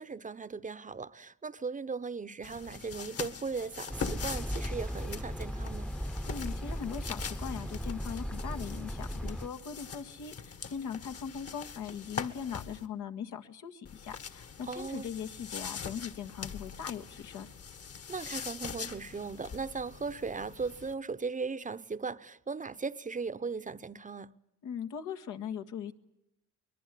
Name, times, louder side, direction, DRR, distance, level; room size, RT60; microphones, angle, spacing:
voice 1, 0.0-5.9 14.7-15.1 18.1-24.3, right 4 dB, 25° right, 0.8 m, -38 dB
sound 1, 2.4-12.9 13.8-20.9, left 6 dB, 55° left, 1.9 m, -43 dB
sound 2, 3.9-9.5, equal, 5° left, 0.9 m, -37 dB
voice 2, 6.3-17.5 24.6-25.9, left 7 dB, 80° left, 1.8 m, -40 dB
23.5 x 21.5 x 8.3 m
cardioid pair, 90°, 30 cm